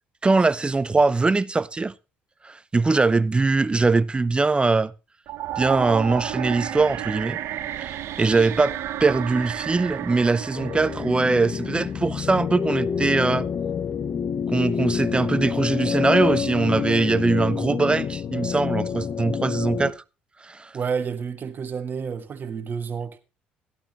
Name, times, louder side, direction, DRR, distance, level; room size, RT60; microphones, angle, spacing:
voice 1, 0.2-1.9 2.4-4.9 5.6-7.4 7.8-13.5 14.5-19.9 20.4-20.7, right 3 dB, 20° right, 0.5 m, -22 dB
sound 1, 5.3-12.4, right 11 dB, 65° right, 0.9 m, -32 dB
sound 2, 10.6-19.9, left 7 dB, 45° left, 0.9 m, -27 dB
voice 2, 20.7-23.2, right 6 dB, 45° right, 1.5 m, -30 dB
13.5 x 11.5 x 3.0 m
hypercardioid pair, 60°, 5 cm